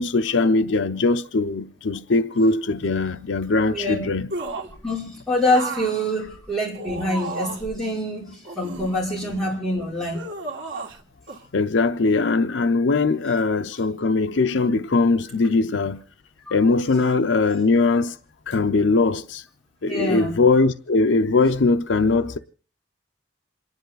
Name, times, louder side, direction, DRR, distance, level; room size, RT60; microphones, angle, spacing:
voice 1, 0.0-4.3 11.5-16.0 16.5-18.2 18.5-19.4 19.8-22.4, left 3 dB, 75° left, 0.6 m, -21 dB
sound 1, 4.3-4.8 5.5-7.8 8.4-9.5 10.1-11.0 11.3-11.4, right 3 dB, 70° right, 2.1 m, -34 dB
voice 2, 4.8-10.2 19.9-20.4, left 1 dB, ahead, 5.7 m, -25 dB
28.0 x 10.5 x 4.0 m
head